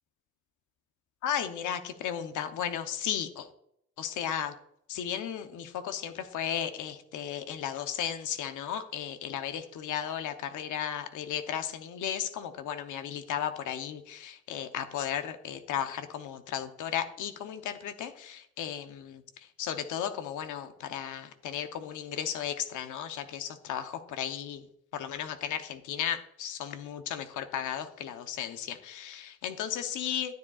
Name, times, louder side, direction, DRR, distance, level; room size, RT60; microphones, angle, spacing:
voice 1, 1.2-3.5 4.0-4.5 4.9-24.7 24.9-30.3, left 9 dB, 80° left, 8 dB, 0.9 m, -35 dB
12.5 x 7.5 x 2.4 m, 0.72 s
cardioid pair, 90°, 30 cm